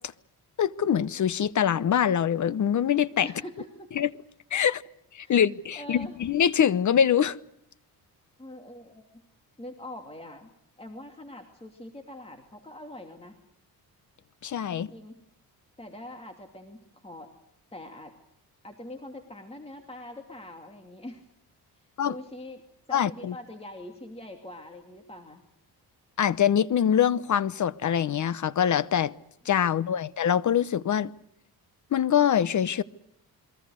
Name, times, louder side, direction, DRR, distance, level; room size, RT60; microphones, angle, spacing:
voice 1, 0.6-3.3 4.0-4.1 4.5-4.8 5.1-7.4 14.4-14.9 22.0-22.1 22.9-23.3 26.2-29.1 29.4-31.1 31.9-32.8, left 9 dB, 50° left, 0.9 m, -24 dB
voice 2, 3.2-3.9 5.2-5.4 5.7-6.2 8.4-9.1 9.6-10.5 10.8-13.4 14.7-15.2 15.8-17.3 17.7-18.2 18.6-21.3 21.7-22.6 22.9-25.4 29.9-30.0, left 1 dB, 15° left, 2.7 m, -43 dB
28.5 x 22.5 x 6.5 m
cardioid pair, 130°, 38 cm